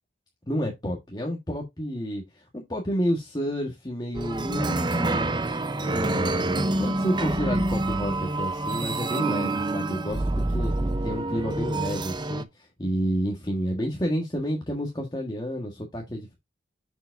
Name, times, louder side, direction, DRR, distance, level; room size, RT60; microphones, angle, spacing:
voice 1, 0.5-5.3 5.8-10.7 11.0-16.3, equal, 25° left, 1.5 m, -30 dB
sound 1, 4.1-12.4, right 2 dB, 25° right, 0.7 m, -27 dB
7.0 x 6.9 x 2.6 m
head